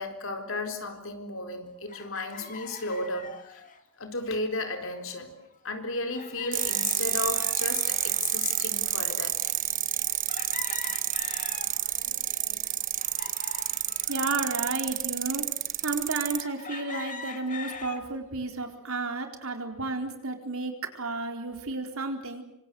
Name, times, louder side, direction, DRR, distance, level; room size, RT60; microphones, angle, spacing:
voice 1, 0.0-3.6 4.0-9.5 10.5-10.6 11.8-12.8, left 2 dB, 65° left, 6 dB, 4.1 m, -35 dB
sound 1, 1.9-3.8 5.0-5.1 5.4-5.5 6.1-8.9 9.5-9.6 10.3-12.0 12.5-14.4 15.1-15.2 16.3-18.0 18.6-19.0, left 5 dB, 35° left, 2.3 m, -43 dB
sound 2, 6.5-16.4, right 12 dB, 40° right, 1.1 m, -29 dB
voice 2, 14.1-15.5 15.8-22.4, right 3 dB, 75° right, 5 dB, 4.2 m, -32 dB
27.0 x 25.5 x 7.9 m, 0.81 s
head